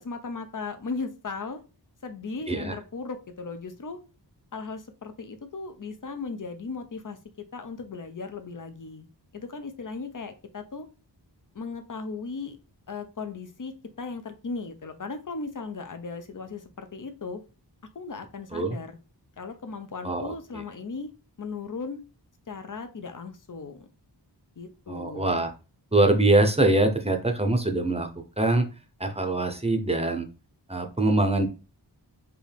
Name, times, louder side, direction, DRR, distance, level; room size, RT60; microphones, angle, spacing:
voice 1, 0.0-1.6 2.0-4.0 4.5-7.2 7.5-9.1 9.3-10.9 11.5-12.6 12.9-17.4 17.9-19.0 19.4-21.1 21.4-22.0 22.5-23.9 24.6-25.4, left 4 dB, 45° left, 8 dB, 0.7 m, -37 dB
voice 2, 24.9-25.5 25.9-28.7 29.0-30.3 30.7-31.5, right 2 dB, 15° right, 6 dB, 0.7 m, -23 dB
4.6 x 2.6 x 3.4 m, 0.32 s
wide cardioid pair, 60°, 43 cm